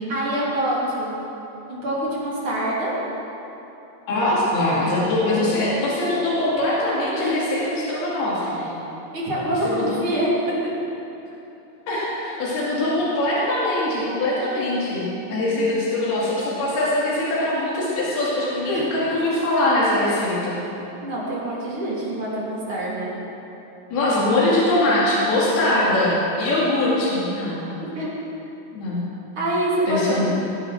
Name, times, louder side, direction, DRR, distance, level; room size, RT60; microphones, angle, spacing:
voice 1, 0.1-1.1 1.7-2.9 7.1-7.5 9.1-10.3 15.5-15.6 18.7-18.9 21.0-23.2 27.9-28.1 29.4-30.2, right 1 dB, 35° right, -7 dB, 4.0 m, -25 dB
voice 2, 4.1-8.7 9.6-10.0 11.9-20.5 23.9-27.6 28.7-29.0 29.9-30.3, left 1 dB, 80° left, -7 dB, 4.4 m, -22 dB
20.5 x 9.0 x 6.0 m, 3.0 s
omnidirectional pair, 4.4 m